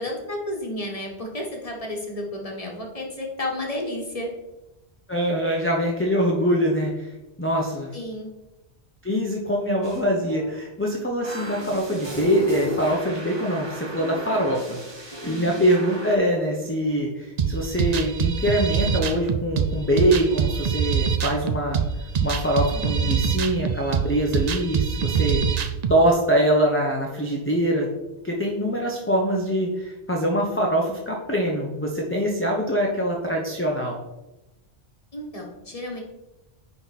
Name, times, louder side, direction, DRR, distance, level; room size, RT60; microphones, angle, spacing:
voice 1, 0.0-4.3 7.9-8.3 15.2-15.6 22.7-23.2 35.1-36.0, left 1 dB, 35° left, 0 dB, 1.4 m, -32 dB
voice 2, 5.1-7.1 7.4-7.9 9.0-21.8 22.2-25.4 25.9-27.9 28.2-34.0, equal, 15° left, -1 dB, 0.8 m, -23 dB
sound 1, 9.8-10.0 10.3-10.5 11.2-16.2, left 1 dB, 25° right, 1.3 m, -34 dB
sound 2, 17.4-26.0, right 7 dB, 50° right, 0.5 m, -24 dB
9.5 x 4.0 x 4.2 m, 0.98 s
omnidirectional pair, 1.1 m